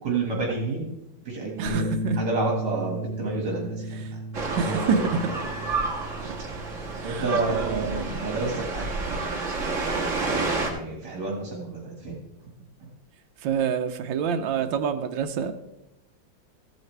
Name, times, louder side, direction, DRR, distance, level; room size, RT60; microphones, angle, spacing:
voice 1, 0.0-0.9 1.2-1.9 2.2-4.2 4.5-5.0 7.0-9.4 10.2-12.2, right 3 dB, 60° right, -1 dB, 2.4 m, -30 dB
voice 2, 1.6-2.2 4.0-4.1 4.6-5.1 6.2-6.3 7.0-8.2 13.4-15.5, right 6 dB, 85° right, 7 dB, 1.5 m, -27 dB
Bass guitar, 1.7-7.9, equal, 20° left, 1.7 m, -35 dB
sound 1, 4.3-10.7, right 3 dB, 45° right, 1.9 m, -30 dB
15.0 x 9.2 x 3.3 m, 0.90 s
omnidirectional pair, 2.0 m